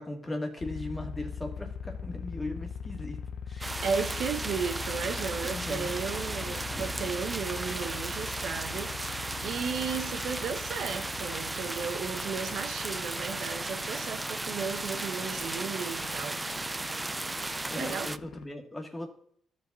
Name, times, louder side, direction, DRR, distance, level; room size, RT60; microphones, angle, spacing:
voice 1, 0.0-3.8 5.4-5.9 17.7-19.1, left 1 dB, 20° left, 2.0 m, -38 dB
sound 1, 0.6-18.5, left 6 dB, 65° left, 0.6 m, -42 dB
sound 2, 3.6-18.2, right 2 dB, 15° right, 0.4 m, -35 dB
voice 2, 3.8-16.4 17.7-18.1, right 6 dB, 70° right, 1.0 m, -35 dB
13.5 x 5.2 x 4.1 m
cardioid pair, 90°, 0 cm